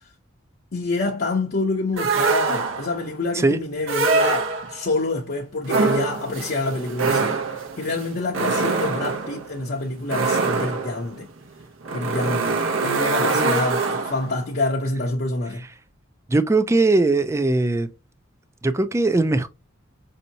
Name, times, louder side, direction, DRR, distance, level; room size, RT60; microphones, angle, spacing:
voice 1, 0.7-11.3 11.9-15.6, left 2 dB, 50° left, 0.6 m, -27 dB
sound 1, 2.0-3.0 3.8-4.9 5.6-14.4, right 4 dB, 70° right, 0.8 m, -24 dB
voice 2, 16.3-17.9 18.6-19.5, right 2 dB, 15° right, 0.4 m, -19 dB
5.3 x 2.7 x 2.7 m
head